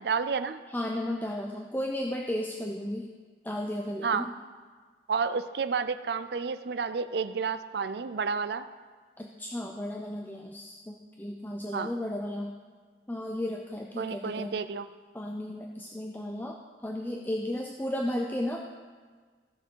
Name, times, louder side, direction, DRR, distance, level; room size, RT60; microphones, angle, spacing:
voice 1, 0.0-0.6 4.0-4.3 5.1-8.6 11.7-11.9 14.0-14.9, right 5 dB, 60° right, 12 dB, 0.4 m, -30 dB
voice 2, 0.7-3.1 3.4-4.3 9.2-12.5 13.1-14.5 15.1-18.6, left 1 dB, 10° left, 1 dB, 0.5 m, -34 dB
14.5 x 6.7 x 4.6 m, 1.5 s
head